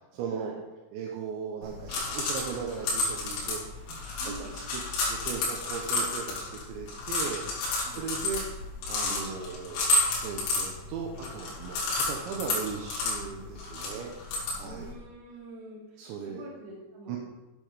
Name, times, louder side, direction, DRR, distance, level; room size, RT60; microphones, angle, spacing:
voice 1, 0.1-0.5 0.9-4.8 5.1-8.6 8.9-14.1 14.5-14.9 16.0-16.4 17.1-17.2, right 6 dB, 80° right, 0 dB, 2.9 m, -38 dB
sound 1, 1.6-14.9, left 2 dB, 75° left, 5.0 m, -31 dB
voice 2, 4.2-4.6 7.8-8.1 14.6-17.2, right 1 dB, 45° right, -4 dB, 3.8 m, -46 dB
11.0 x 7.7 x 5.0 m, 1.1 s
omnidirectional pair, 6.0 m